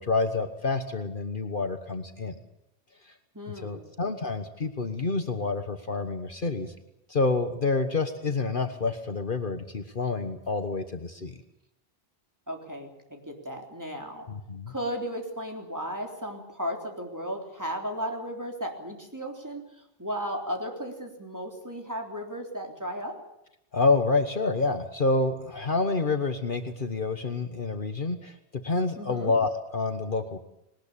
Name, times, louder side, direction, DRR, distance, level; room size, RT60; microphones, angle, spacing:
voice 1, 0.0-2.4 3.6-6.7 7.1-11.4 14.3-14.7 23.7-30.4, left 3 dB, 50° left, 8 dB, 1.5 m, -28 dB
voice 2, 3.3-3.8 12.5-14.3 14.7-19.7 20.0-23.2 29.0-29.3, equal, 15° right, 2 dB, 3.6 m, -35 dB
20.5 x 19.5 x 8.6 m, 0.83 s
omnidirectional pair, 1.1 m